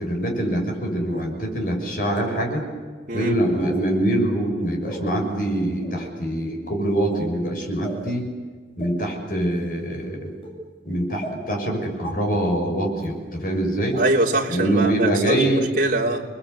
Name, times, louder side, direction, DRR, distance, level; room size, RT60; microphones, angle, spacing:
voice 1, 0.0-2.7 3.1-8.3 8.8-10.3 10.8-14.0 14.5-15.6, right 1 dB, 50° left, 2 dB, 6.8 m, -24 dB
sound 1, 1.1-1.2 2.1-2.2 3.6-3.8 4.8-5.0 5.8-6.0 7.0-7.3 7.8-8.1 8.8-8.9 9.5-9.7 10.4-10.5 11.2-11.3 12.0-12.1 13.0-13.1 13.9-14.0 14.8-14.9 15.4-15.5, equal, 30° left, 7.5 m, -37 dB
voice 2, 13.9-16.2, right 2 dB, 50° right, 0 dB, 3.5 m, -23 dB
29.5 x 21.5 x 8.2 m, 1.6 s
head